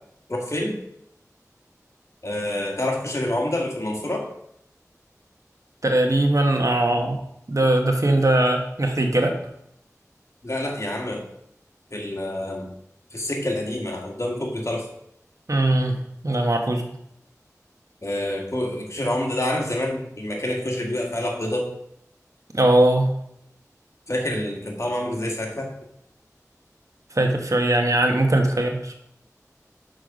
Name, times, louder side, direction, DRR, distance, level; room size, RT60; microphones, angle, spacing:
voice 1, 0.3-0.8 2.2-4.3 10.4-11.3 11.9-12.7 13.1-14.9 18.0-21.7 24.1-25.8, left 1 dB, 55° left, 0 dB, 1.8 m, -27 dB
voice 2, 5.8-7.2 7.5-9.3 15.5-16.0 16.2-16.8 22.5-23.1 27.1-28.9, right 1 dB, 65° right, 3 dB, 1.2 m, -20 dB
6.4 x 5.8 x 5.2 m, 0.76 s
wide cardioid pair, 45°, 6 cm